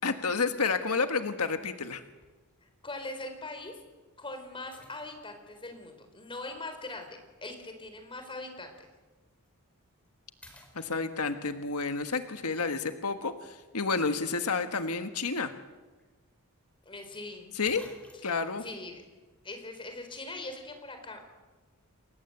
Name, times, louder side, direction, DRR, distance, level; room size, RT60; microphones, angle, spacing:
voice 1, 0.0-2.0 10.7-15.5 17.5-17.8 18.2-18.6, left 4 dB, 85° left, 8 dB, 1.5 m, -30 dB
sound 1, 2.2-2.5 3.2-3.3 4.7-5.5 7.0-7.1 9.3-9.5 9.9-10.1 10.4-11.5 15.6-15.7 16.0-16.1 17.2-17.3 17.6-18.5, left 1 dB, 5° left, 4.5 m, -56 dB
voice 2, 2.6-3.7 4.2-7.1 7.4-8.9 16.9-17.5 18.2-19.0 19.4-21.2, left 2 dB, 25° left, 6 dB, 4.3 m, -41 dB
29.0 x 21.5 x 8.0 m, 1.3 s
head